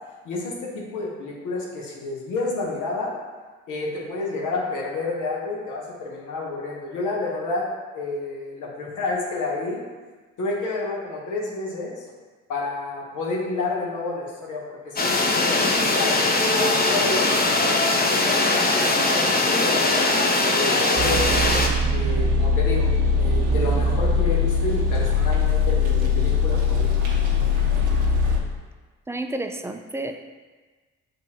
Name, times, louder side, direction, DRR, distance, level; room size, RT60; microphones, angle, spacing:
voice 1, 0.2-3.1 3.7-7.7 7.9-9.8 10.4-11.9 12.5-17.2 17.6-19.9 20.5-21.5 21.9-27.1, left 3 dB, 75° left, -3 dB, 1.0 m, -30 dB
sound 1, 15.0-21.7, left 2 dB, 30° left, 0.7 m, -20 dB
sound 2, 21.0-28.4, left 4 dB, 75° right, 0.8 m, -21 dB
voice 2, 29.1-30.1, right 2 dB, 10° right, 6 dB, 0.4 m, -30 dB
6.8 x 2.6 x 2.8 m, 1.4 s
hypercardioid pair, 50°, 31 cm